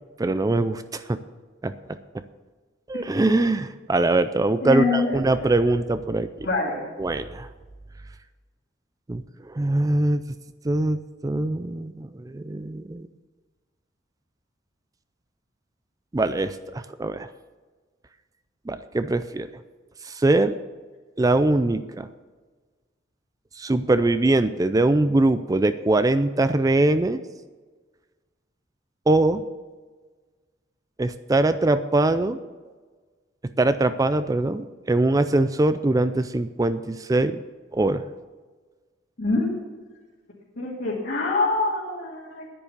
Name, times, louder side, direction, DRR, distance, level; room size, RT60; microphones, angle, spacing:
voice 1, 0.2-1.2 1.6-1.7 2.9-6.5 7.0-7.5 9.1-9.2 9.5-10.2 10.6-13.1 16.1-17.3 18.7-19.5 20.0-20.6 21.2-22.1 23.6-27.2 29.1-29.4 31.0-32.4 33.6-37.4 37.7-38.0, right 2 dB, 20° right, 12 dB, 0.4 m, -22 dB
voice 2, 4.6-5.6 6.4-6.8 39.2-39.5 40.6-42.5, left 3 dB, 60° left, -5 dB, 2.5 m, -25 dB
10.0 x 9.8 x 6.7 m, 1.4 s
head